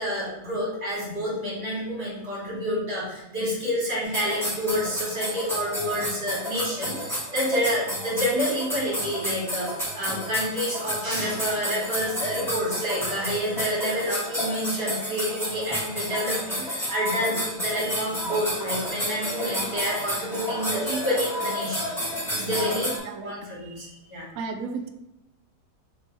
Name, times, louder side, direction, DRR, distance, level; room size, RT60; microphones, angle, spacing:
voice 1, 0.0-21.9 22.3-22.9 23.2-24.3, equal, 40° right, -7 dB, 1.9 m, -28 dB
sound 1, 4.0-23.0, equal, ahead, 1.2 m, -31 dB
voice 2, 23.0-23.3 24.3-24.9, right 4 dB, 70° right, 6 dB, 0.8 m, -33 dB
3.4 x 3.2 x 4.4 m, 0.97 s
omnidirectional pair, 1.8 m